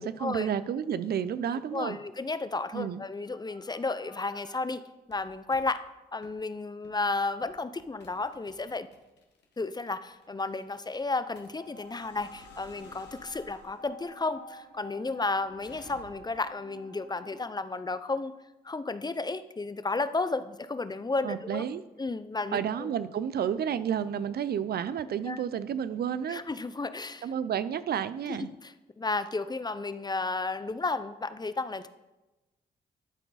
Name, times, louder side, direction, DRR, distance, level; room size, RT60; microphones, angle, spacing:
voice 1, 0.0-2.0 2.7-3.0 21.2-21.8 22.5-26.4 27.2-28.5, right 8 dB, 65° right, 14 dB, 0.4 m, -31 dB
voice 2, 1.7-4.8 5.1-5.8 6.1-8.9 9.6-18.3 18.6-21.6 22.0-22.9 25.3-25.4 26.3-27.3 28.6-31.9, left 3 dB, 25° left, 12 dB, 0.5 m, -33 dB
sound 1, 2.8-4.6 5.1-5.7 6.2-6.4 6.8-7.1 7.4-16.5, left 3 dB, 80° left, 1.4 m, -56 dB
sound 2, 11.6-17.5, left 1 dB, 85° right, 1.2 m, -50 dB
12.0 x 4.5 x 4.1 m, 1.1 s
supercardioid pair, 55°, 18 cm